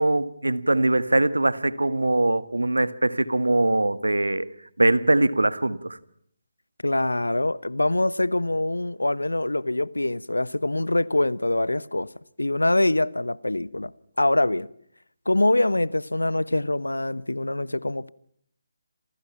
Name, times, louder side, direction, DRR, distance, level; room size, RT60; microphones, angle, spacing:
voice 1, 0.0-4.5 4.8-6.0, right 2 dB, 75° right, 1.7 m, -22 dB
voice 2, 6.8-12.1 12.4-13.9 14.2-14.7 15.2-18.1, left 1 dB, 80° left, 1.1 m, -24 dB
28.5 x 27.5 x 5.7 m
figure-of-eight pair, 145°, 0 cm